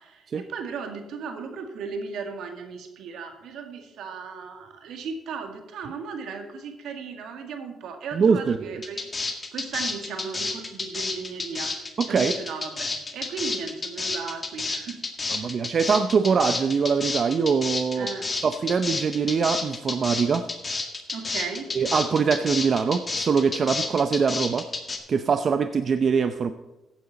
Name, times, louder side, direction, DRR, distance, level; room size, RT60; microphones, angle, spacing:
voice 1, 0.0-9.1 9.5-15.0 15.3-15.5 18.0-18.3 21.1-21.7, right 5 dB, 80° right, 5 dB, 1.9 m, -36 dB
voice 2, 8.1-8.7 12.0-12.3 15.3-18.1 18.4-20.4 21.7-24.7 25.1-26.5, right 5 dB, 50° right, 9 dB, 0.6 m, -23 dB
sound 1, 8.8-25.0, left 3 dB, 30° left, 1.8 m, -30 dB
15.0 x 9.0 x 4.2 m, 1.0 s
cardioid pair, 90°, 0 cm